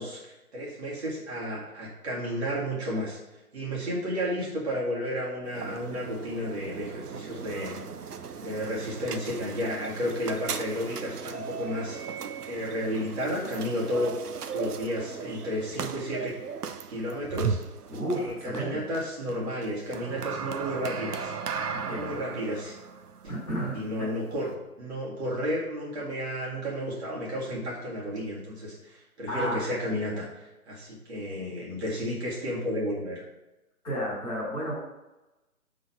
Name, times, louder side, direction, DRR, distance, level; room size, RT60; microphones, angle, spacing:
voice 1, 0.0-3.2 3.5-7.8 8.4-12.0 12.5-14.1 14.5-16.3 16.9-17.6 18.1-21.3 21.8-22.8 23.7-33.2, equal, 45° right, -5 dB, 2.1 m, -32 dB
sound 1, 5.5-24.5, right 6 dB, 80° right, 0.7 m, -37 dB
voice 2, 17.9-18.8 21.7-22.2 23.3-24.1 29.3-29.7 33.8-34.7, equal, 10° left, -11 dB, 2.0 m, -32 dB
5.4 x 4.0 x 5.7 m, 1.0 s
figure-of-eight pair, 155°, 46 cm